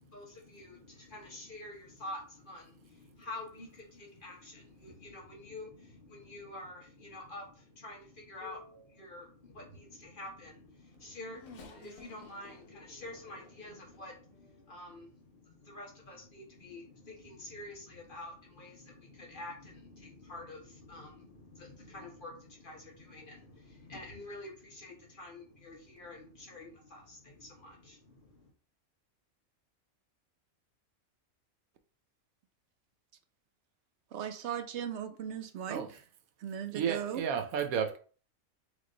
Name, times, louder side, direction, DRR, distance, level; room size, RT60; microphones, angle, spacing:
voice 1, 0.0-28.5, left 2 dB, 40° left, 0 dB, 1.2 m, -48 dB
Race car auto racing / Accelerating revving vroom, 10.6-15.0 15.7-15.8 16.9-17.1, left 3 dB, 70° left, 1.3 m, -55 dB
voice 2, 34.1-35.8 36.4-37.2, right 9 dB, 65° right, 8 dB, 0.8 m, -37 dB
voice 3, 36.7-38.0, right 7 dB, 85° right, 5 dB, 1.2 m, -32 dB
3.6 x 3.3 x 3.8 m, 0.40 s
omnidirectional pair, 1.5 m